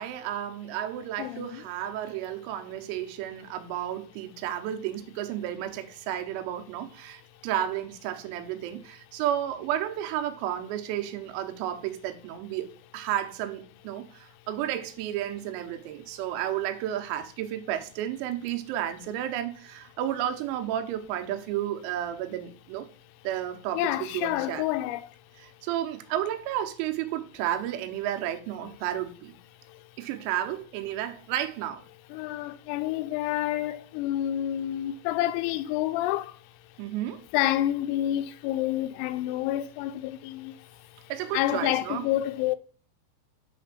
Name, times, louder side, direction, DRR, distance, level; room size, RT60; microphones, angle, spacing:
voice 1, 0.0-22.9 23.3-24.7 25.4-29.4 30.0-31.8 36.8-37.2 41.1-42.1, right 11 dB, 90° right, 3.6 m, -32 dB
voice 2, 1.2-1.6 23.8-25.0 29.7-29.8 32.1-36.4 37.3-40.6 41.3-42.6, left 13 dB, 85° left, 3.2 m, -28 dB
9.3 x 3.3 x 5.9 m
omnidirectional pair, 6.0 m